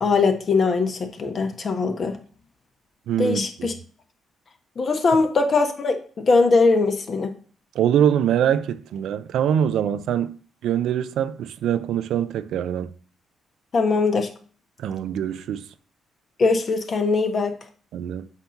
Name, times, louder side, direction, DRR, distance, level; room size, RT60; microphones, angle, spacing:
voice 1, 0.0-2.2 3.2-3.7 4.8-7.3 13.7-14.3 16.4-17.5, left 4 dB, 45° left, 1.2 m, -21 dB
voice 2, 3.1-3.7 7.7-12.9 14.8-15.7 17.9-18.3, right 9 dB, 75° right, 0.5 m, -24 dB
7.9 x 2.9 x 5.8 m
cardioid pair, 90°, 0 cm